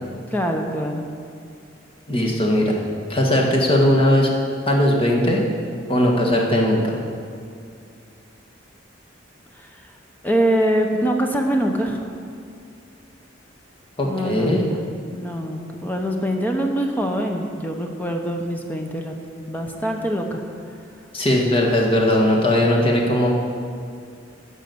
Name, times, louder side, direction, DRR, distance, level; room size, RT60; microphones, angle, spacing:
voice 1, 0.3-1.1 10.2-12.0 14.0-14.7 15.1-19.1 19.5-20.4, right 1 dB, 10° left, 2 dB, 0.9 m, -23 dB
voice 2, 2.1-2.7 3.1-4.3 4.7-5.4 5.9-7.0 14.0-14.6 21.1-23.3, left 1 dB, 30° left, -2 dB, 1.8 m, -18 dB
12.5 x 6.3 x 7.9 m, 2.3 s
head